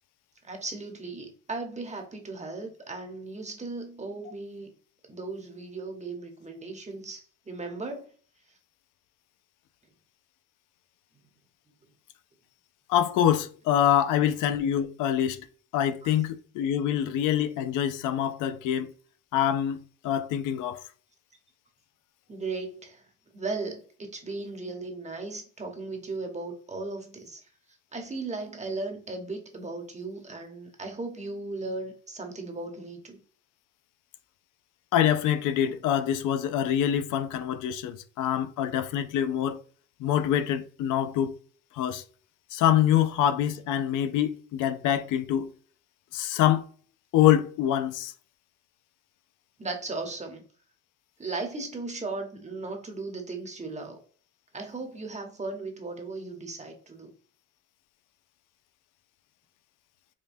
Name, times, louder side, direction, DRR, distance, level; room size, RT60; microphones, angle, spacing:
voice 1, 0.4-4.7 5.1-8.1 16.0-16.1 22.3-23.0 23.3-27.4 27.9-33.2 49.6-50.4 51.2-54.0 54.5-57.1, right 3 dB, 25° right, 1.0 m, -36 dB
voice 2, 12.9-15.5 15.7-18.9 19.3-20.8 34.9-39.6 40.0-41.4 41.7-42.0 42.5-45.5 46.1-46.7 47.1-48.1, left 10 dB, 90° left, 0.5 m, -25 dB
5.1 x 2.2 x 2.6 m
cardioid pair, 90°, 30 cm